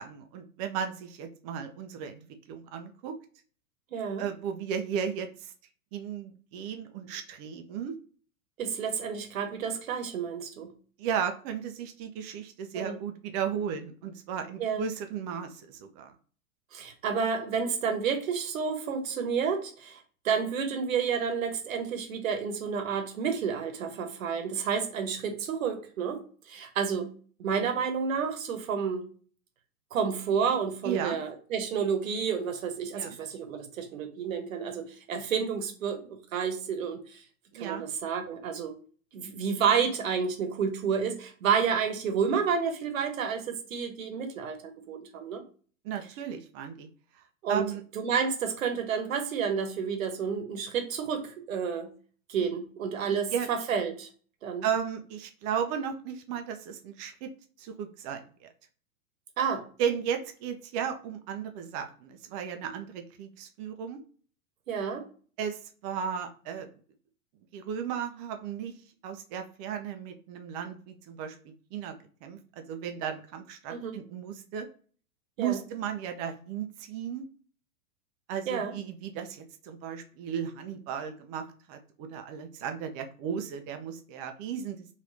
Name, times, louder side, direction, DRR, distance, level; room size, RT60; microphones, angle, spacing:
voice 1, 0.0-3.2 4.2-5.5 5.9-7.9 11.0-16.1 30.8-31.2 33.0-33.1 37.5-37.8 45.8-46.9 47.5-47.8 52.4-52.5 53.1-53.5 54.6-57.3 57.6-58.5 59.8-64.0 65.4-66.7 67.5-68.7 69.0-74.7 75.4-77.2 78.3-85.0, right 8 dB, 30° right, 6 dB, 0.5 m, -35 dB
voice 2, 3.9-4.2 8.6-10.7 12.7-13.0 14.6-14.9 16.7-26.2 26.5-27.1 27.4-29.1 29.9-37.2 37.5-38.7 39.1-45.4 47.4-47.6 47.9-51.9 52.3-54.1 54.4-54.6 59.4-59.6 64.7-65.0 73.7-74.0 75.4-75.6 78.5-78.7, right 6 dB, 65° right, 6 dB, 1.0 m, -30 dB
3.3 x 3.1 x 2.6 m, 0.42 s
figure-of-eight pair, 100°, 43 cm